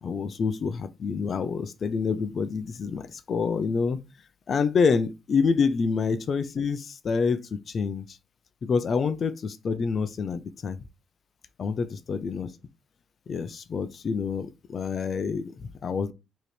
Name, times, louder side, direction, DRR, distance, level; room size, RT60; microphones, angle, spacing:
voice 1, 0.0-4.0 4.5-8.1 8.6-10.8 11.6-12.5 13.3-16.1, left 5 dB, 50° left, 0.6 m, -27 dB
4.9 x 3.0 x 3.3 m
cardioid pair, 90°, 0 cm